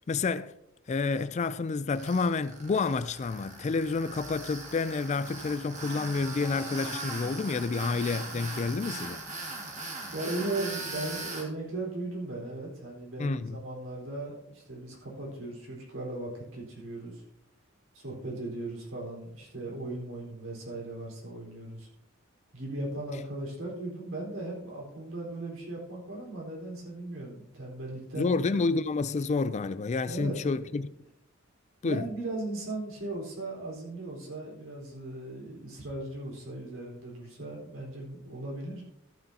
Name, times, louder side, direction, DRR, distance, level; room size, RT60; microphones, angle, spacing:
voice 1, 0.1-0.5 0.9-9.2 13.2-13.6 28.1-30.9 31.8-32.1, left 4 dB, 35° left, 0.3 m, -29 dB
Tools, 1.9-11.4, right 2 dB, 35° right, 2.0 m, -40 dB
voice 2, 10.1-17.2 17.9-21.9 22.5-28.3 30.0-30.7 31.8-38.8, right 2 dB, 70° right, 4.3 m, -37 dB
14.0 x 9.2 x 2.8 m
head